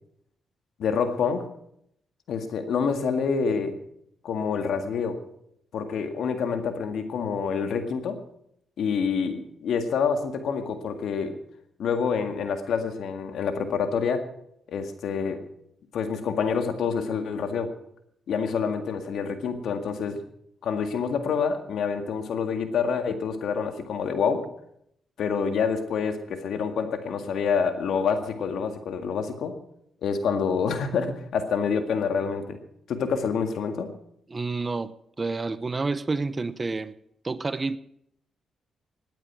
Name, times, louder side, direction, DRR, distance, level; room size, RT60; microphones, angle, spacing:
voice 1, 0.8-1.4 2.3-3.8 4.2-5.2 5.7-8.2 8.8-11.4 11.8-14.2 14.7-15.4 15.9-17.7 18.3-20.2 20.6-24.5 25.2-29.6 30.0-32.6 32.9-33.9, left 6 dB, 75° left, 1.9 m, -27 dB
voice 2, 34.3-36.9 37.2-37.8, right 3 dB, 30° right, 0.7 m, -29 dB
19.0 x 9.1 x 6.2 m
cardioid pair, 85°, 0 cm